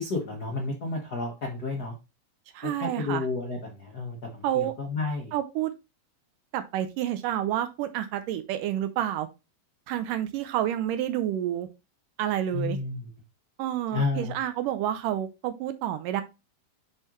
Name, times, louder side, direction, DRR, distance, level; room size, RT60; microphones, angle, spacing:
voice 1, 0.0-1.9 2.6-5.3 12.5-13.1 13.9-14.3, left 3 dB, 90° left, 0.8 m, -31 dB
voice 2, 2.5-3.3 4.4-4.7 5.3-5.7 6.5-9.3 9.9-11.7 12.2-12.8 13.6-16.2, right 11 dB, 80° right, 2.1 m, -29 dB
9.0 x 3.8 x 3.1 m
omnidirectional pair, 4.1 m